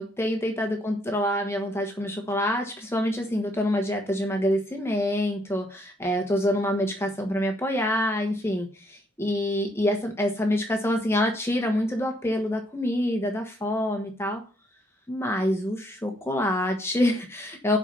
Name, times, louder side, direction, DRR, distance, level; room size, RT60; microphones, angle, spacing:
voice 1, 0.0-14.4 15.1-17.8, left 1 dB, 10° left, 3 dB, 1.3 m, -26 dB
8.4 x 5.7 x 6.8 m, 0.35 s
head